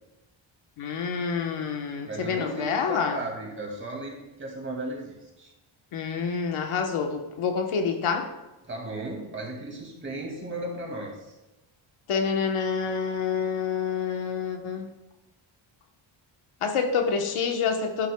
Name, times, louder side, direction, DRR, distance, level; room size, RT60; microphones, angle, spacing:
voice 1, 0.8-3.2 5.9-8.3 12.1-14.9 16.6-18.1, left 6 dB, 75° left, 3 dB, 1.3 m, -27 dB
voice 2, 2.0-5.5 8.6-11.3, right 2 dB, 25° right, -1 dB, 2.4 m, -35 dB
11.0 x 10.0 x 2.3 m, 1.0 s
wide cardioid pair, 145°, 50 cm